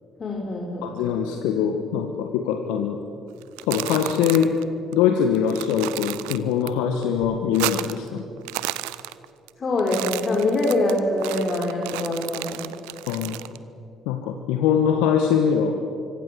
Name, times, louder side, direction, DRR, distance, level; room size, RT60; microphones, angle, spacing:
voice 1, 0.2-0.9 9.6-12.6, left 2 dB, 40° left, 0 dB, 4.8 m, -24 dB
voice 2, 0.8-3.0 3.7-4.5 4.9-8.2 13.1-13.4 14.0-15.7, left 8 dB, 75° left, 4 dB, 1.6 m, -22 dB
sound 1, 3.4-4.6 4.9-5.0 5.3-6.7 7.0-8.1 8.4-9.5 9.8-13.6, right 19 dB, 75° right, 0.7 m, -32 dB
25.5 x 24.5 x 7.7 m, 2.6 s
hypercardioid pair, 50°, 0 cm